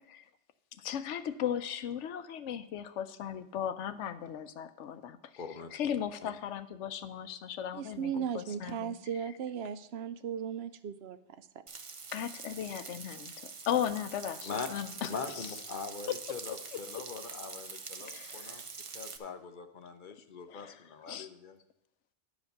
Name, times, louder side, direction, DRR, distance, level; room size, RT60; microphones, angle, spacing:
voice 1, 0.8-5.4 5.7-9.0 12.1-15.6 16.1-16.2 16.7-17.0 18.0-18.6 20.5-21.3, left 9 dB, 85° left, 12 dB, 0.9 m, -37 dB
voice 2, 5.4-5.7 6.2-6.3 14.4-14.7 15.1-18.6 18.9-21.6, left 5 dB, 50° left, 8 dB, 0.8 m, -42 dB
voice 3, 7.7-11.5, right 8 dB, 65° right, 12 dB, 0.8 m, -37 dB
Frying (food), 11.7-19.2, right 5 dB, 35° right, 0.6 m, -45 dB
10.5 x 5.0 x 6.5 m, 0.81 s
omnidirectional pair, 1.2 m